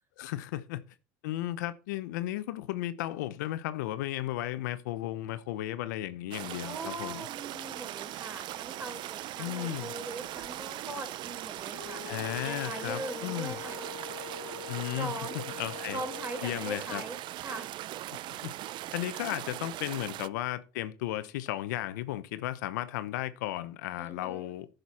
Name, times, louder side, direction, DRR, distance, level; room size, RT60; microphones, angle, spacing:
voice 1, 0.2-0.8 1.2-7.2 9.4-9.9 12.0-13.6 14.7-15.1 15.6-16.0 16.4-17.0 18.4-18.5 18.9-24.7, left 14 dB, 85° left, 0.8 m, -34 dB
sound 1, 6.3-20.3, right 14 dB, 55° right, 0.4 m, -40 dB
voice 2, 6.6-12.0 12.4-13.9 14.9-15.4 15.9-17.7 24.0-24.6, right 2 dB, 25° right, 4.0 m, -41 dB
sound 2, 6.6-13.7, right 7 dB, 80° right, 2.9 m, -54 dB
sound 3, 11.7-16.6, left 11 dB, 70° left, 1.3 m, -44 dB
10.5 x 6.6 x 4.2 m
supercardioid pair, 85°, 10 cm